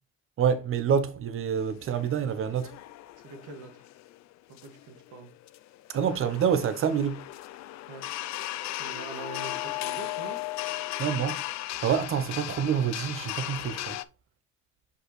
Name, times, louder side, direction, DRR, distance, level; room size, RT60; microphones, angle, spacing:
voice 1, 0.4-2.8 5.9-7.3 11.0-11.4 11.8-14.0, right 7 dB, 45° right, 0.9 m, -27 dB
sound 1, 1.6-14.0, left 16 dB, 65° left, 0.5 m, -37 dB
voice 2, 3.2-3.8 4.5-5.3 7.9-8.0 8.8-10.4, right 3 dB, 85° right, 2.0 m, -43 dB
6.6 x 5.4 x 3.2 m
cardioid pair, 130°, 29 cm